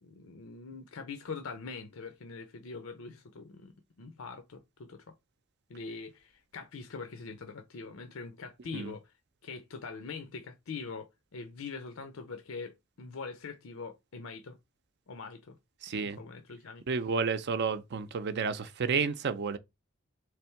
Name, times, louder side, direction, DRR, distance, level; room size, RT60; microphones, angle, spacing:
voice 1, 0.0-5.1 5.7-9.1 9.4-14.6 15.1-15.6 16.0-16.8, left 4 dB, 85° left, 0.6 m, -43 dB
voice 2, 15.8-16.2 16.9-19.6, right 5 dB, 55° right, 0.5 m, -31 dB
3.6 x 3.3 x 4.4 m
head